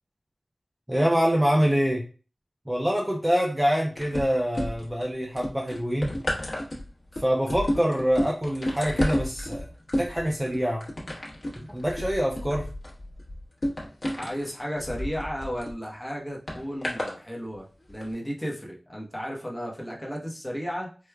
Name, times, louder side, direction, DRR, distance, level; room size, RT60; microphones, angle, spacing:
voice 1, 0.9-2.0 2.7-6.1 7.2-9.7 10.0-10.8 11.6-12.6, equal, 15° right, -2 dB, 0.5 m, -25 dB
sound 1, 4.0-5.0 5.4-15.7 16.5-17.2 17.9-18.0, left 1 dB, 45° left, 1.0 m, -31 dB
voice 2, 14.2-20.9, equal, 10° left, -2 dB, 0.8 m, -34 dB
4.5 x 2.2 x 2.2 m, 0.38 s
wide cardioid pair, 75°, 0 cm